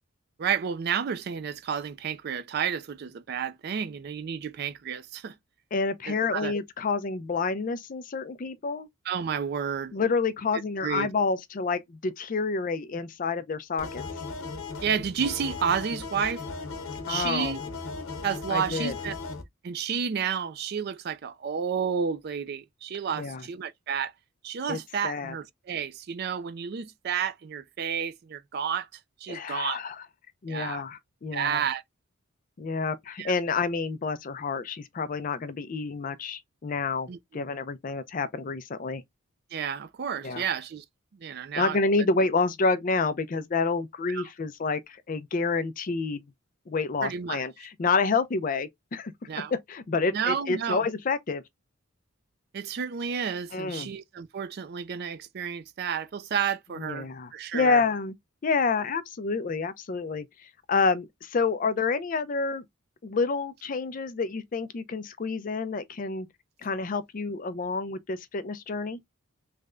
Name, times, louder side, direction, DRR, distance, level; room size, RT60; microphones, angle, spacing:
voice 1, 0.4-5.3 6.1-6.5 9.1-9.9 10.8-11.1 14.8-16.4 17.1-17.6 18.2-19.1 19.6-24.1 24.4-28.9 29.2-29.8 30.5-30.8 31.3-31.8 33.2-33.3 37.1-37.4 39.5-40.8 41.2-41.8 44.1-44.2 47.0-47.4 49.3-49.5 50.1-50.9 52.5-57.8, right 7 dB, 50° right, 0.4 m, -31 dB
voice 2, 5.7-8.9 9.9-14.0 17.1-17.6 18.5-18.9 23.1-23.4 24.7-25.3 29.3-30.0 30.4-31.6 32.6-39.0 40.2-40.4 41.6-46.2 46.7-49.1 49.5-51.4 53.5-53.9 56.8-58.1 58.4-62.6 63.0-66.3 66.6-69.0, left 4 dB, 40° left, 0.4 m, -28 dB
sound 1, 13.8-19.4, left 3 dB, 85° left, 1.0 m, -37 dB
3.3 x 2.1 x 3.6 m
head